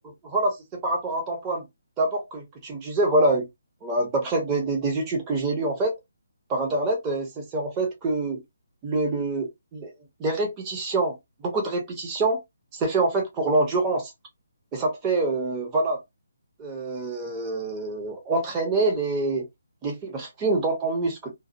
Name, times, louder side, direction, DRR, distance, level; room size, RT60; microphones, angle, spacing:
voice 1, 0.3-1.7 2.0-3.5 3.8-5.9 6.5-8.4 8.8-9.9 10.2-11.2 11.4-12.4 12.7-14.1 14.7-16.0 16.6-19.5 19.8-21.3, right 2 dB, 15° right, 0.8 m, -25 dB
2.5 x 2.0 x 2.5 m
figure-of-eight pair, 145°, 0 cm